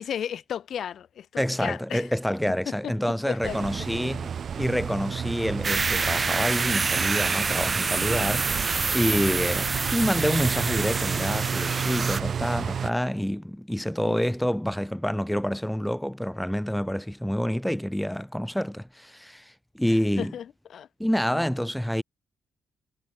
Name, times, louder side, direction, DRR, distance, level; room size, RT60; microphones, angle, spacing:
voice 1, 0.0-2.1 2.7-2.9 3.2-3.7 14.1-14.2 19.9-20.9, left 9 dB, 65° left, 2.8 m, -34 dB
voice 2, 1.4-4.3 4.5-8.5 8.9-19.4 19.7-20.3 21.0-22.0, equal, 5° left, 3.5 m, -27 dB
sound 1, 3.4-12.9, right 7 dB, 55° right, 3.0 m, -31 dB
sound 2, 5.6-12.2, right 4 dB, 30° right, 0.6 m, -27 dB
cardioid pair, 95°, 0 cm